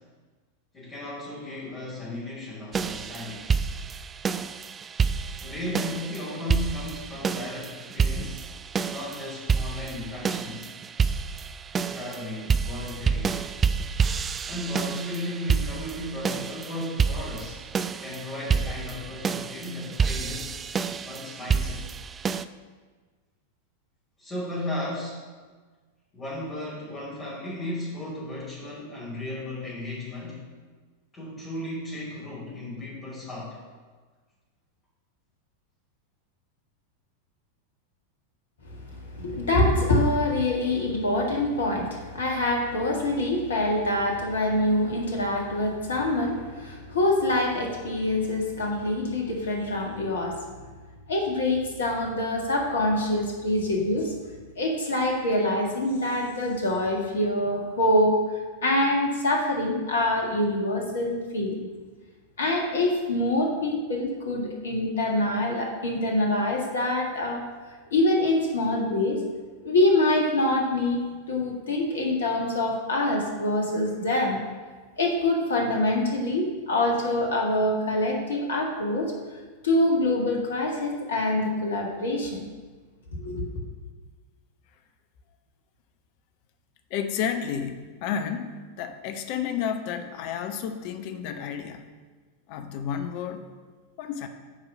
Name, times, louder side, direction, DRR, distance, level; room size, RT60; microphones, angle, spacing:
voice 1, 0.7-3.5 5.4-8.4 8.9-10.7 11.9-13.4 14.5-17.6 18.0-20.6 21.0-21.8 24.2-25.2 26.1-30.4 31.1-33.6, left 1 dB, 20° left, -8 dB, 3.0 m, -35 dB
sound 1, 2.7-22.4, right 6 dB, 20° right, 0.3 m, -29 dB
voice 2, 38.7-50.4 51.1-54.1 54.6-58.2 58.6-61.6 62.4-67.4 67.9-69.2 69.6-71.0 71.3-74.4 75.0-79.1 79.6-82.4 83.2-83.5, left 1 dB, 65° left, 1 dB, 1.8 m, -25 dB
voice 3, 86.9-91.8 92.5-93.5 94.0-94.3, left 8 dB, 45° left, 8 dB, 0.8 m, -31 dB
9.5 x 4.8 x 6.3 m, 1.4 s
figure-of-eight pair, 90°, 0 cm